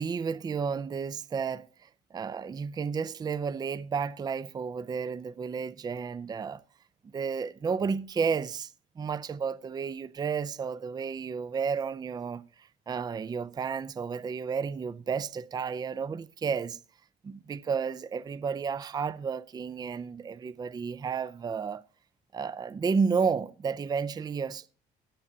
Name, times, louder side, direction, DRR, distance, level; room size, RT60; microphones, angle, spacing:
voice 1, 0.0-6.6 7.0-16.8 17.2-21.8 22.3-24.7, right 5 dB, 25° right, 0.4 m, -32 dB
17.5 x 6.9 x 2.7 m
cardioid pair, 110°, 17 cm